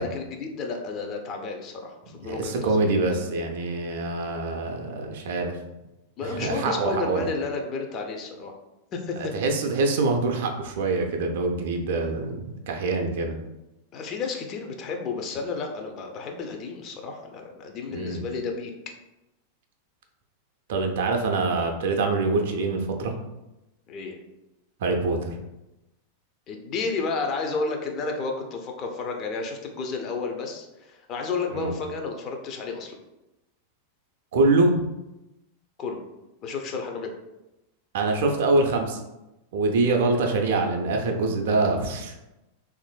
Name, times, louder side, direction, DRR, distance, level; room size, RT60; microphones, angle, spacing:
voice 1, 0.0-2.8 6.2-8.5 8.9-9.3 13.9-18.7 23.9-24.2 26.5-32.9 35.8-36.0 36.4-37.1, left 4 dB, 35° left, 3 dB, 0.4 m, -31 dB
voice 2, 2.2-5.6 6.2-7.3 9.2-13.3 17.9-18.2 20.7-23.1 24.8-25.4 31.5-31.7 34.3-34.8 37.9-39.0 39.5-42.1, right 3 dB, 55° right, 3 dB, 0.4 m, -25 dB
3.0 x 2.4 x 2.3 m, 0.96 s
figure-of-eight pair, 90°, 0 cm